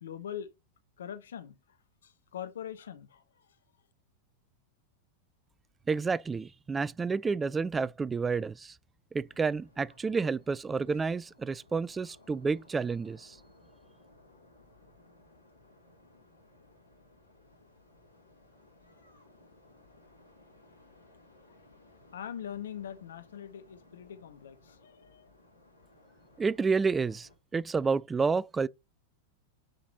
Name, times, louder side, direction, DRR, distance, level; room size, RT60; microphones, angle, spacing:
voice 1, 0.0-0.5 1.0-1.6 2.0-3.2 22.1-25.3, left 9 dB, 65° left, 1.0 m, -42 dB
voice 2, 5.9-8.8 9.1-13.4 26.4-28.7, right 4 dB, 15° right, 0.3 m, -30 dB
sound 1, 9.3-27.4, left 2 dB, 85° left, 3.1 m, -60 dB
9.1 x 4.1 x 4.2 m
figure-of-eight pair, 90°, 0 cm